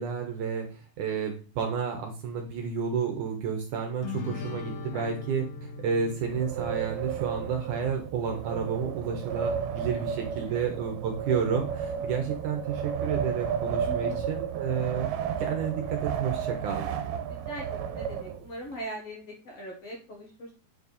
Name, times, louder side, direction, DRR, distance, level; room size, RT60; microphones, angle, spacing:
voice 1, 0.0-16.9, right 6 dB, 65° right, 3 dB, 2.3 m, -31 dB
sound 1, 4.0-7.6, left 3 dB, 80° left, 1.4 m, -39 dB
Wind, 6.1-18.7, right 8 dB, 85° right, 2.5 m, -33 dB
voice 2, 13.8-14.3 17.3-20.6, right 1 dB, 55° left, -1 dB, 2.0 m, -41 dB
8.8 x 4.6 x 4.1 m, 0.34 s
omnidirectional pair, 4.5 m